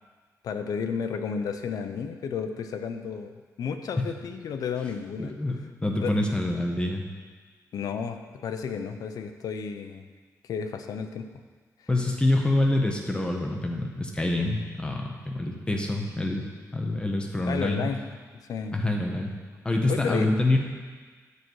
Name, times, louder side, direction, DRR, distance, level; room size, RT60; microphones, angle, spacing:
voice 1, 0.4-3.3 3.6-5.3 6.0-6.1 7.7-10.1 10.5-11.3 17.4-18.0 18.5-18.8 19.9-20.3, left 6 dB, 80° left, 7 dB, 0.7 m, -32 dB
voice 2, 5.2-7.0 11.9-16.4 16.7-17.8 18.7-19.3 19.6-20.6, left 2 dB, 15° left, 1 dB, 1.3 m, -26 dB
9.6 x 7.6 x 4.8 m, 1.5 s
wide cardioid pair, 115°, 6 cm